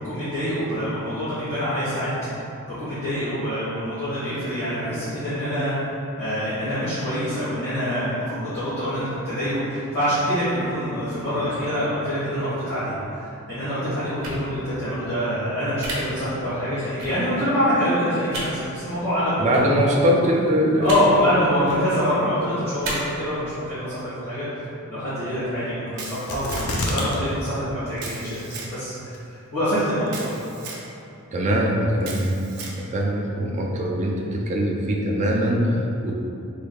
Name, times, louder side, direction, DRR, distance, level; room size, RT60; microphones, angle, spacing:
voice 1, 0.0-2.1 2.4-19.8 20.8-30.3, equal, 40° left, -15 dB, 1.3 m, -25 dB
sound 1, 14.2-14.4 15.8-15.9 17.0-17.1 18.3-18.4 19.5-19.6 20.8-21.0 21.6-21.8 22.8-22.9, right 2 dB, 60° right, 0.8 m, -31 dB
voice 2, 19.4-21.8 31.3-32.4 32.7-36.1, equal, 30° right, -1 dB, 0.4 m, -22 dB
Camera, 26.0-26.9 28.0-28.7 30.1-30.8 32.0-32.8, right 4 dB, 85° right, 0.6 m, -37 dB
sound 2, 26.3-27.2 27.5-27.6 28.1-28.6 29.1-29.2, left 1 dB, 80° left, 0.6 m, -27 dB
3.8 x 3.4 x 2.3 m, 2.7 s
head